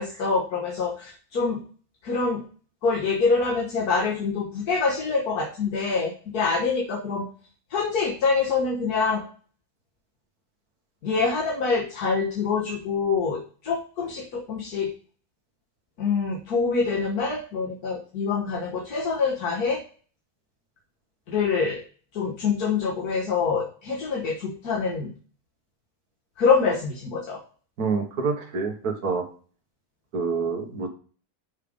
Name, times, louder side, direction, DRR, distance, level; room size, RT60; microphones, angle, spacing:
voice 1, 0.0-1.6 2.0-2.4 2.8-7.2 7.7-9.2 11.0-14.9 16.0-19.8 21.3-21.8 22.1-25.1 26.4-27.4, left 4 dB, 85° left, -1 dB, 1.8 m, -25 dB
voice 2, 27.8-29.2 30.1-30.9, right 4 dB, 80° right, 4 dB, 1.8 m, -27 dB
6.5 x 5.1 x 5.0 m, 0.41 s
omnidirectional pair, 1.6 m